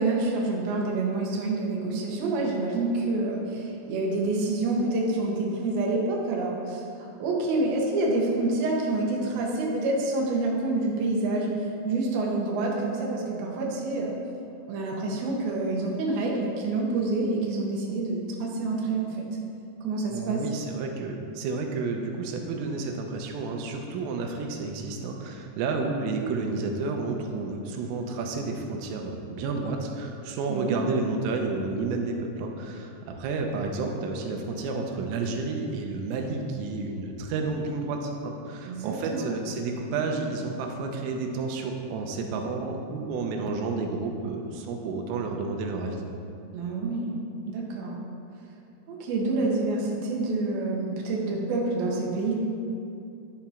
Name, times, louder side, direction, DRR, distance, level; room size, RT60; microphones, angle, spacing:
voice 1, 0.0-6.8 7.2-11.5 11.9-14.1 14.7-19.3 19.8-20.4 30.5-30.8 38.6-39.3 46.5-47.2 47.5-48.0 48.9-52.3, right 2 dB, 65° right, -2 dB, 2.5 m, -27 dB
voice 2, 20.1-46.0, right 3 dB, 90° right, 2 dB, 3.4 m, -31 dB
11.0 x 7.0 x 4.4 m, 2.6 s
omnidirectional pair, 5.9 m